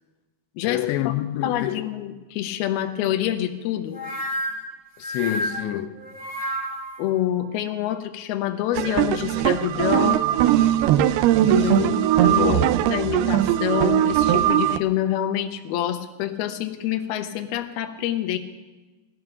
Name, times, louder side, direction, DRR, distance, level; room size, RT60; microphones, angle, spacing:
voice 1, 0.6-1.9 5.0-6.0 11.6-11.9 12.3-12.8, left 13 dB, 90° left, 3.0 m, -27 dB
voice 2, 1.4-4.0 7.0-10.2 11.5-12.5 12.8-18.4, left 12 dB, 75° left, 2.6 m, -27 dB
sound 1, 3.9-7.0, equal, 5° right, 1.1 m, -30 dB
sound 2, 8.7-14.8, right 12 dB, 80° right, 2.4 m, -20 dB
17.5 x 12.0 x 5.9 m
omnidirectional pair, 5.0 m